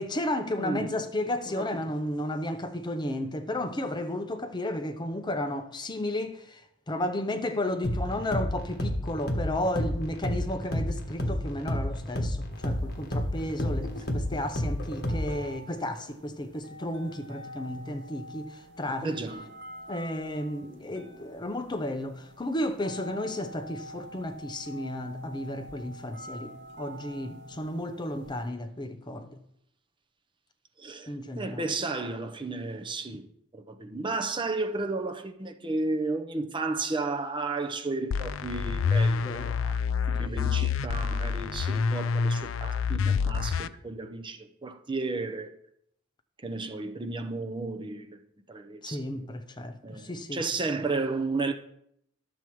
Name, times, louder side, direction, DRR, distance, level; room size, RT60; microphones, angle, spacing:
voice 1, 0.0-6.6 6.9-19.2 19.9-29.4 31.1-31.6 39.2-39.6 40.2-40.6 48.8-50.4, left 1 dB, 20° left, 0.7 m, -33 dB
voice 2, 0.6-1.0 1.5-1.7 19.0-19.5 30.8-33.3 33.5-45.5 46.4-48.2 48.5-49.3 49.8-51.5, right 3 dB, 25° right, 0.7 m, -33 dB
sound 1, 7.8-15.5, left 1 dB, 50° left, 1.3 m, -31 dB
sound 2, 12.5-28.5, equal, 55° right, 1.0 m, -47 dB
sound 3, 38.1-43.7, left 5 dB, 65° left, 0.4 m, -27 dB
11.5 x 7.1 x 4.6 m
head